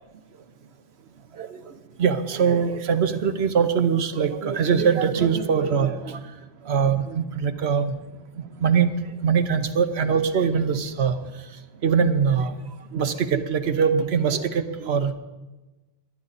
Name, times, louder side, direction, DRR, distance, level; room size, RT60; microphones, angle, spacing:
voice 1, 2.0-6.2 6.7-8.0 8.6-8.9 9.2-11.2 11.8-12.6 12.9-15.1, right 6 dB, 90° right, 9 dB, 1.2 m, -22 dB
22.0 x 10.0 x 4.1 m, 1.1 s
omnidirectional pair, 1.0 m